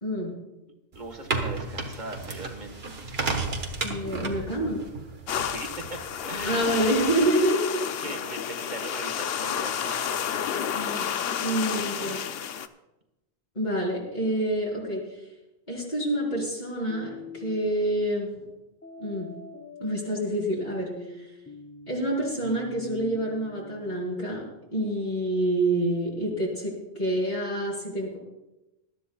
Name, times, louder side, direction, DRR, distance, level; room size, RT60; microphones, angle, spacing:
voice 1, 0.0-0.3 3.8-4.8 6.4-8.1 10.7-11.1 11.4-12.2 13.6-15.0 15.7-18.3 19.0-19.3 19.8-20.9 21.2-21.3 21.9-24.4 24.7-28.2, right 1 dB, 45° left, -5 dB, 3.5 m, -27 dB
voice 2, 0.9-2.9 5.4-6.0 6.2-6.7 8.0-10.5 11.7-12.1, right 2 dB, 50° right, 4 dB, 1.6 m, -40 dB
sound 1, 0.9-7.1, right 3 dB, 75° right, 1.5 m, -34 dB
sound 2, 5.3-12.7, left 8 dB, 75° left, 0.8 m, -30 dB
sound 3, 16.9-17.7 18.8-23.9, left 3 dB, 10° left, 0.9 m, -43 dB
20.5 x 12.0 x 2.3 m, 0.98 s
omnidirectional pair, 1.0 m